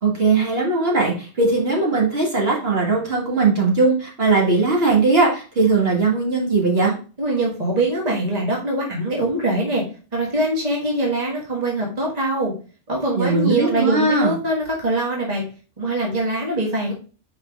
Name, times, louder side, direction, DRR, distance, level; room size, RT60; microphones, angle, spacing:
voice 1, 0.0-6.9 13.2-14.3, right 3 dB, 60° right, -2 dB, 2.1 m, -19 dB
voice 2, 7.2-9.8 10.1-12.5 12.9-15.4 15.8-16.9, right 1 dB, 35° right, -2 dB, 1.7 m, -23 dB
5.5 x 4.8 x 3.5 m, 0.36 s
omnidirectional pair, 1.1 m